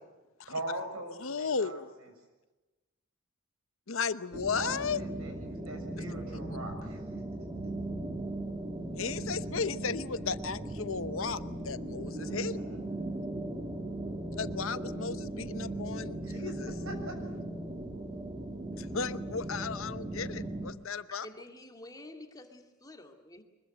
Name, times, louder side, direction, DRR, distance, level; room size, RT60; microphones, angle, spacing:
voice 1, 0.5-1.8 4.5-7.2 12.1-12.8 16.2-17.2, right 1 dB, 75° right, 4 dB, 7.0 m, -42 dB
voice 2, 1.2-1.8 3.9-5.0 9.0-12.6 14.3-16.7 18.8-21.3, left 5 dB, 60° left, 13 dB, 0.9 m, -35 dB
sound 1, 4.3-20.7, right 1 dB, 20° right, 2.1 m, -38 dB
voice 3, 21.2-23.4, left 1 dB, 15° left, 4 dB, 2.2 m, -49 dB
24.0 x 21.5 x 9.0 m, 1.1 s
head